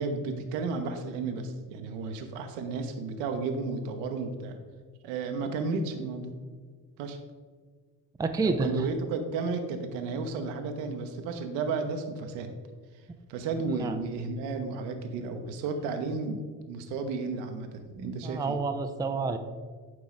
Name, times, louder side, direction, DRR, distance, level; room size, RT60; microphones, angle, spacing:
voice 1, 0.0-4.6 5.0-6.4 7.0-7.2 8.4-12.6 13.3-18.6, right 4 dB, 65° right, 6 dB, 1.1 m, -33 dB
voice 2, 8.2-8.9 13.7-14.0 18.0-19.4, right 3 dB, 10° right, 6 dB, 0.5 m, -29 dB
10.5 x 4.9 x 4.0 m, 1.5 s
figure-of-eight pair, 50°, 47 cm